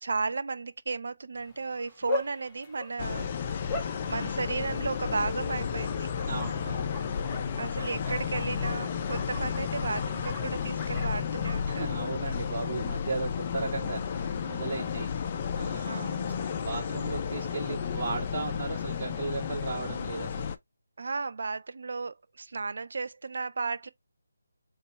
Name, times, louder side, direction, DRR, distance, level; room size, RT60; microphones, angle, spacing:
voice 1, 0.0-3.6 4.1-6.1 7.5-11.9 13.6-13.7 15.9-16.2 21.0-23.9, right 4 dB, 60° right, 0.5 m, -34 dB
Bark, 1.4-12.6, left 2 dB, 10° left, 0.8 m, -42 dB
sound 1, 3.0-20.6, left 7 dB, 25° left, 0.4 m, -32 dB
voice 2, 6.3-7.0 7.8-8.3 11.7-16.1 16.6-20.5, right 4 dB, 40° right, 2.2 m, -36 dB
3.9 x 2.4 x 4.2 m
figure-of-eight pair, 165°, 0 cm